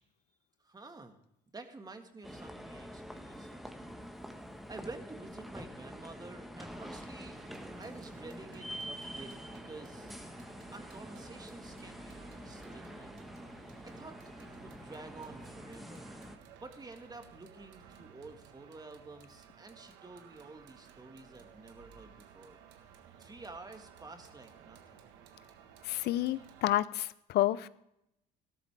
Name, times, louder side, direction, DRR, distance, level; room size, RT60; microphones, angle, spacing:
voice 1, 0.6-1.2 1.5-4.0 4.7-7.4 7.8-10.1 10.7-13.2 13.8-16.2 16.6-22.6 23.2-25.1, right 3 dB, 20° right, 6 dB, 1.7 m, -50 dB
sound 1, 2.2-16.4, equal, ahead, 1.2 m, -46 dB
sound 2, 7.3-26.7, right 8 dB, 75° right, 1.4 m, -56 dB
voice 2, 25.8-27.7, left 14 dB, 65° left, 17 dB, 0.6 m, -30 dB
13.5 x 12.5 x 3.4 m, 0.81 s
supercardioid pair, 80°, 18 cm